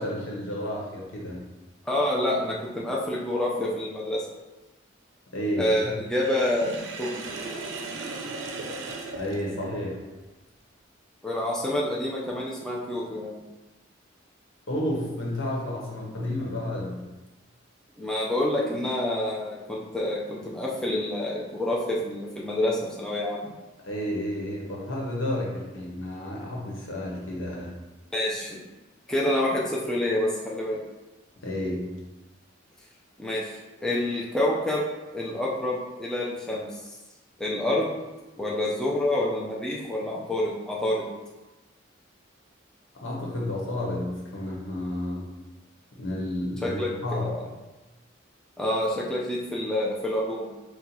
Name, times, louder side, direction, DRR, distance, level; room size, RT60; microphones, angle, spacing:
voice 1, 0.0-1.4 5.3-6.0 9.2-10.0 14.7-17.0 23.8-27.7 31.4-31.9 43.0-45.3 46.0-47.3, left 1 dB, 85° left, -3 dB, 1.1 m, -31 dB
voice 2, 1.9-4.2 5.6-6.7 7.0-7.3 11.2-13.4 18.0-23.5 28.1-28.6 29.1-30.8 33.2-33.4 33.8-34.8 35.1-36.7 37.4-37.9 38.4-41.1 46.6-47.4 48.6-50.5, left 1 dB, 5° left, -5 dB, 0.5 m, -27 dB
Sink (filling or washing), 6.1-10.1, right 3 dB, 75° right, 0.5 m, -37 dB
4.4 x 2.3 x 4.0 m, 1.1 s
head